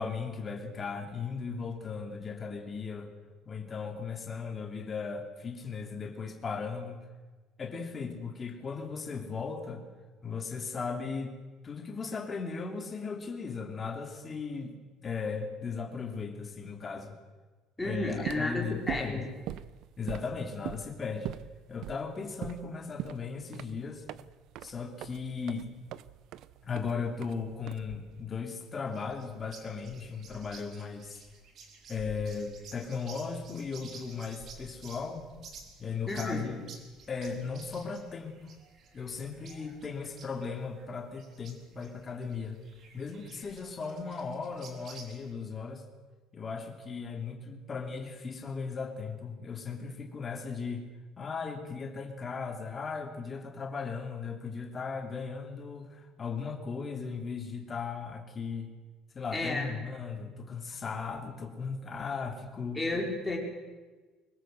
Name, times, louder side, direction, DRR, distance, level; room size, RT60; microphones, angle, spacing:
voice 1, 0.0-3.1 3.4-7.0 7.6-9.8 10.2-11.4 11.6-17.2 17.8-19.3 20.0-21.3 21.7-24.0 24.6-25.7 26.6-31.2 31.9-35.2 35.8-36.7 37.1-38.4 38.9-42.6 42.9-45.8 46.3-50.9 51.2-58.7 59.1-62.8, left 5 dB, 25° left, 3 dB, 3.2 m, -37 dB
voice 2, 17.8-19.2 36.1-36.5 59.3-59.7 62.7-63.4, left 2 dB, 10° left, -1 dB, 5.1 m, -32 dB
sound 1, 18.1-28.3, right 13 dB, 60° right, 0.8 m, -42 dB
sound 2, 28.9-45.3, right 4 dB, 40° right, 4.0 m, -52 dB
24.0 x 21.0 x 7.9 m, 1.3 s
cardioid pair, 160°, 0 cm